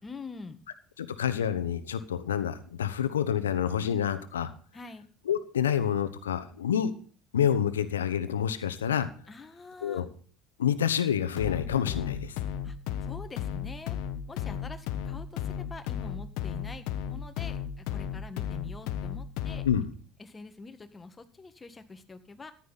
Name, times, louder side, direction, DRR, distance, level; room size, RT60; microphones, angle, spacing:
voice 1, 0.0-0.6 4.7-5.0 9.3-10.0 12.6-12.8 13.0-14.0 14.3-19.6 20.2-22.5, left 3 dB, 25° left, 9 dB, 1.7 m, -45 dB
voice 2, 1.0-4.5 5.3-6.9 7.3-9.1 9.8-10.1 10.6-12.4 19.6-19.9, left 9 dB, 85° left, 12 dB, 1.0 m, -28 dB
sound 1, 11.4-19.8, left 9 dB, 65° left, 1.0 m, -35 dB
14.5 x 11.0 x 4.2 m, 0.43 s
hypercardioid pair, 65°, 0 cm